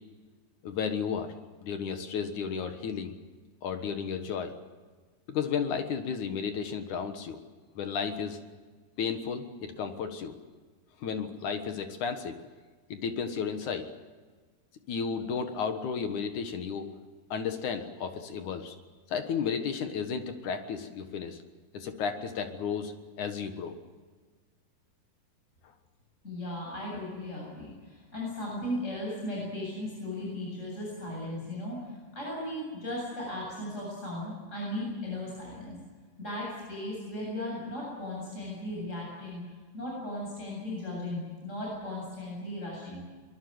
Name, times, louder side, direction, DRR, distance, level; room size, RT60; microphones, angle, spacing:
voice 1, 0.6-1.3 1.6-3.1 3.6-4.5 5.3-7.4 7.8-8.4 9.0-10.3 11.0-12.4 12.9-13.9 14.9-16.9 17.3-18.7 19.1-21.4 21.7-23.7, left 6 dB, 65° left, 7 dB, 2.7 m, -33 dB
voice 2, 26.2-35.8 36.2-39.4 39.7-43.0, left 1 dB, 20° left, -3 dB, 8.3 m, -36 dB
23.5 x 22.0 x 7.9 m, 1.4 s
omnidirectional pair, 3.9 m